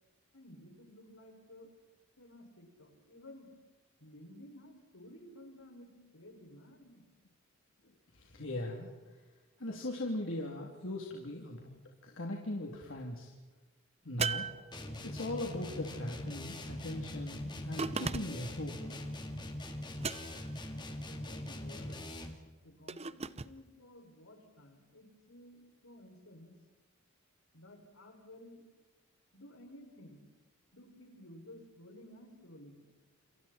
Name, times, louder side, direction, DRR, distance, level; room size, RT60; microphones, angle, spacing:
voice 1, 0.3-1.7 2.2-3.5 4.0-7.0 21.1-22.2 22.6-26.6 27.5-28.6 29.3-30.3 30.7-32.8, left 1 dB, 80° left, 2 dB, 6.2 m, -54 dB
voice 2, 8.1-9.1 9.6-11.7 12.0-13.3 14.0-14.5 15.0-18.7 19.0-19.2, left 1 dB, 65° left, -1 dB, 3.2 m, -39 dB
sound 1, 14.2-15.3 17.8-18.6 20.0-20.6 22.9-23.5, right 5 dB, 30° right, 0.7 m, -37 dB
sound 2, 14.7-22.5, left 1 dB, 20° left, 2.4 m, -42 dB
29.0 x 27.5 x 4.5 m, 1.3 s
head